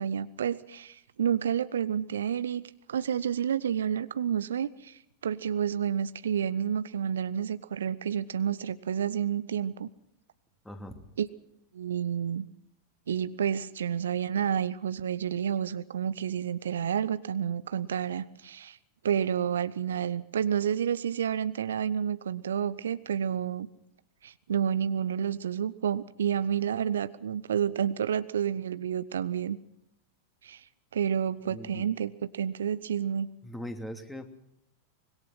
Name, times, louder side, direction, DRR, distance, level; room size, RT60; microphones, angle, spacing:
voice 1, 0.0-2.6 2.9-9.9 11.2-11.3 11.7-12.4 13.1-18.8 19.0-23.7 24.2-29.6 30.4-30.6 30.9-33.3, right 8 dB, 65° right, 15 dB, 0.8 m, -30 dB
voice 2, 10.6-11.0 31.5-31.9 33.4-34.3, equal, 5° left, 6 dB, 2.9 m, -40 dB
25.0 x 21.5 x 5.8 m, 0.74 s
figure-of-eight pair, 90°, 0 cm